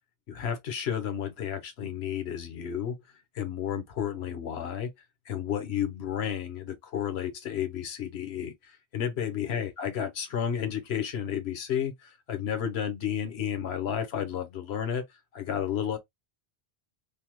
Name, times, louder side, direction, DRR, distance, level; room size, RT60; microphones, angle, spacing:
voice 1, 0.3-3.0 3.3-4.9 5.3-15.0 15.3-16.0, left 9 dB, 85° left, 1.0 m, -32 dB
3.3 x 2.1 x 2.9 m
omnidirectional pair, 1.0 m